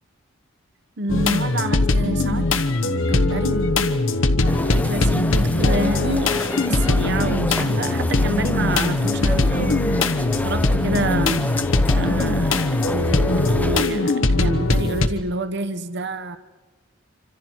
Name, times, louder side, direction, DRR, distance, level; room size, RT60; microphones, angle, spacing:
voice 1, 1.0-2.5 2.8-3.6 4.4-11.4 11.9-16.4, right 2 dB, 55° right, 10 dB, 1.0 m, -28 dB
sound 1, 1.1-15.1, left 2 dB, 75° left, 1.1 m, -21 dB
sound 2, 4.4-13.8, left 1 dB, 10° left, 0.6 m, -29 dB
27.0 x 25.5 x 4.5 m, 1.2 s
head